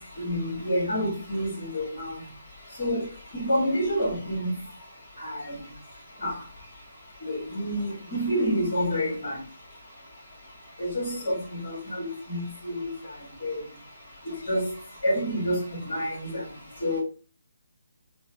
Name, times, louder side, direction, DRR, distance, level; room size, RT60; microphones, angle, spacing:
voice 1, 0.2-2.1 2.8-3.0 3.4-4.5 5.2-5.3 6.2-6.3 7.3-9.4 10.8-12.9 13.4-13.6 14.5-14.7 15.0-15.6 15.9-16.3 16.8-17.0, equal, 40° left, 1.3 m, -28 dB
3.9 x 2.0 x 2.6 m
figure-of-eight pair, 145°, 0 cm